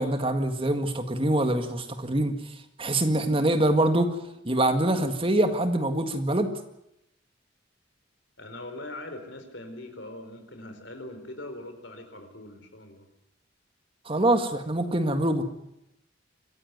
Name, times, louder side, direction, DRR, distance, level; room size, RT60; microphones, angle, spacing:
voice 1, 0.0-2.4 2.8-4.1 4.4-6.5 14.0-15.4, right 1 dB, 30° right, 7 dB, 1.9 m, -24 dB
voice 2, 8.4-13.1, left 1 dB, 65° left, 7 dB, 4.5 m, -41 dB
25.5 x 15.0 x 9.4 m, 0.83 s
head